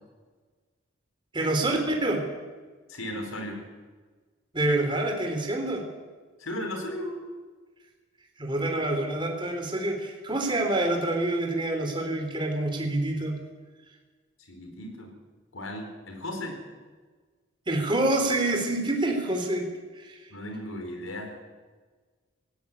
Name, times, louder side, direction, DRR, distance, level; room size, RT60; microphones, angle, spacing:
voice 1, 1.3-2.2 4.5-5.8 8.4-13.4 17.7-19.6 20.0-20.2, right 2 dB, 25° right, 2 dB, 3.6 m, -27 dB
voice 2, 2.9-3.6 6.4-7.2 14.5-15.1 15.5-16.6 20.3-21.4, left 1 dB, 85° left, 4 dB, 4.8 m, -35 dB
17.5 x 17.0 x 8.7 m, 1.4 s
head